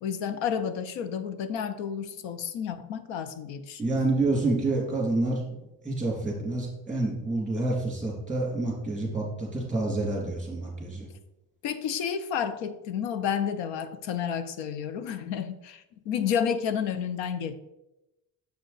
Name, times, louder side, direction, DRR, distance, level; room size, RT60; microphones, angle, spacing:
voice 1, 0.0-4.0 11.6-17.5, left 8 dB, 75° left, 12 dB, 0.7 m, -31 dB
voice 2, 3.8-5.4 5.8-11.1, right 2 dB, ahead, -3 dB, 2.1 m, -28 dB
7.1 x 5.1 x 3.9 m, 0.95 s
cardioid pair, 150°, 46 cm